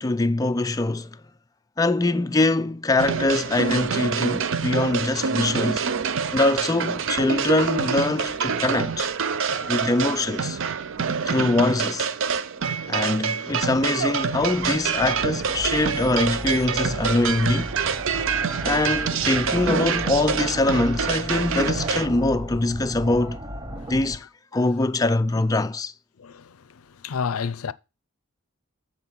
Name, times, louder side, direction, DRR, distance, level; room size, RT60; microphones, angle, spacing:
voice 1, 0.0-1.2 1.8-5.8 6.3-9.1 9.7-10.6 11.3-12.1 12.9-17.7 18.6-23.4 23.9-24.2 24.5-25.9, left 2 dB, 15° left, 0.4 m, -23 dB
sound 1, 3.0-22.1, right 6 dB, 60° right, 0.5 m, -26 dB
Laughter, 7.5-11.5, right 3 dB, 75° right, 1.3 m, -48 dB
sound 2, 14.0-24.2, equal, 20° right, 0.8 m, -36 dB
voice 2, 26.2-26.6 27.0-27.7, left 6 dB, 75° left, 0.5 m, -29 dB
7.5 x 4.4 x 6.4 m
head